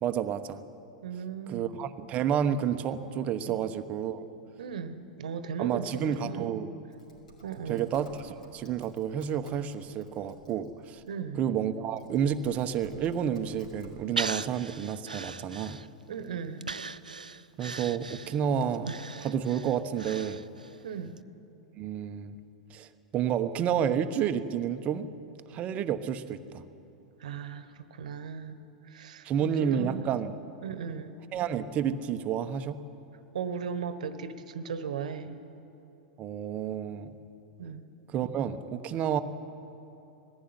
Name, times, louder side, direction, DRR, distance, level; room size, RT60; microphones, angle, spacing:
voice 1, 0.0-0.6 1.5-4.3 5.6-6.7 7.7-11.0 11.3-15.8 17.6-20.4 21.8-22.4 22.7-25.1 25.5-26.6 29.2-30.3 31.3-32.8 36.2-37.1 38.1-39.2, right 8 dB, 35° right, 10 dB, 1.1 m, -30 dB
voice 2, 1.0-1.8 3.5-3.6 4.6-6.6 7.4-7.8 11.1-11.4 16.1-16.8 20.8-21.2 27.2-28.6 28.8-29.3 29.6-30.1 30.6-31.2 33.3-35.4 37.6-37.9, right 6 dB, 65° right, 12 dB, 1.3 m, -37 dB
Typing, 6.9-11.1 11.7-14.0, right 1 dB, 80° left, 5.9 m, -55 dB
Breathing, 14.2-16.1 16.6-20.8 21.2-21.3, right 4 dB, 85° right, 0.5 m, -38 dB
20.5 x 15.5 x 9.8 m, 3.0 s
figure-of-eight pair, 95°, 4 cm